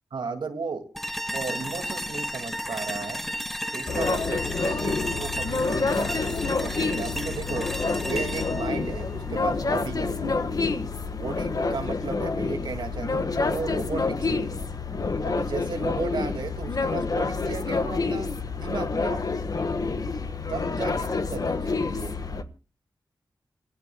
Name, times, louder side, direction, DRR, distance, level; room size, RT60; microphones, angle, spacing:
voice 1, 0.1-0.9 1.3-3.2 3.7-7.7 8.0-10.6 11.2-14.8 15.2-18.3 18.6-19.4 20.5-22.2, right 4 dB, 85° right, 5 dB, 2.2 m, -35 dB
sound 1, 0.9-10.0, equal, 5° left, 0.7 m, -34 dB
sound 2, 3.9-22.4, left 4 dB, 55° left, 1.5 m, -28 dB
27.5 x 15.0 x 2.3 m, 0.34 s
cardioid pair, 50°, 8 cm